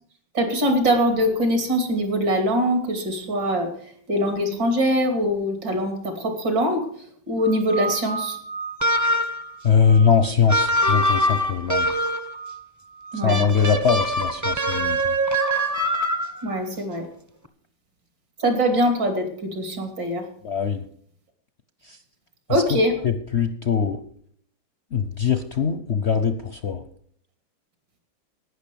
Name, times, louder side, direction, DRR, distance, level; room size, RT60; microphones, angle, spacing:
voice 1, 0.4-3.7 4.1-6.9 7.3-8.4 13.1-13.4 16.4-17.1 18.4-20.2 22.5-22.9, equal, 70° right, 5 dB, 3.5 m, -22 dB
sound 1, 7.4-10.3 10.7-11.4 11.8-13.3, right 5 dB, 50° right, 1.1 m, -35 dB
sound 2, 8.8-9.5 10.5-12.3 13.3-16.5, equal, 15° right, 0.6 m, -23 dB
voice 2, 9.6-11.9 13.1-15.1 20.4-20.8 21.8-22.0 22.5-22.8 23.0-24.0 24.9-26.8, left 6 dB, 55° left, 9 dB, 0.7 m, -22 dB
11.5 x 9.5 x 6.9 m, 0.62 s
omnidirectional pair, 2.0 m